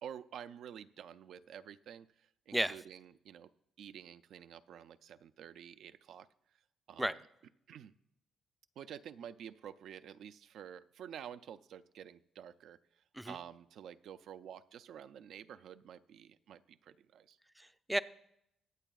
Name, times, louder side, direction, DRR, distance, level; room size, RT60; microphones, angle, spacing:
voice 1, 0.0-3.5 3.8-6.3 6.9-7.2 7.7-7.9 8.8-17.4, right 9 dB, 75° right, 12 dB, 0.4 m, -50 dB
voice 2, 17.6-18.0, right 1 dB, 5° right, 12 dB, 0.4 m, -33 dB
23.0 x 8.1 x 2.3 m, 0.76 s
cardioid pair, 90°, 0 cm